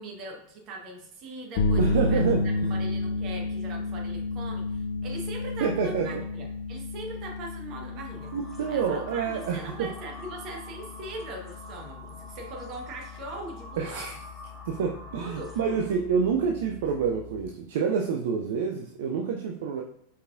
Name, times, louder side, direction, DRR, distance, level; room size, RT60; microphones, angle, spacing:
voice 1, 0.0-8.4 8.7-14.1 15.1-15.5 16.4-16.5, right 2 dB, 35° right, 1 dB, 1.1 m, -41 dB
sound 1, 1.6-17.5, left 3 dB, 50° left, 0.6 m, -32 dB
voice 2, 1.8-2.4 5.6-6.2 8.3-9.9 13.8-14.1 14.7-19.8, right 6 dB, 55° right, 3 dB, 0.4 m, -27 dB
sound 2, 8.0-16.1, equal, ahead, 1.1 m, -47 dB
4.7 x 4.6 x 2.4 m, 0.68 s
figure-of-eight pair, 90°, 0 cm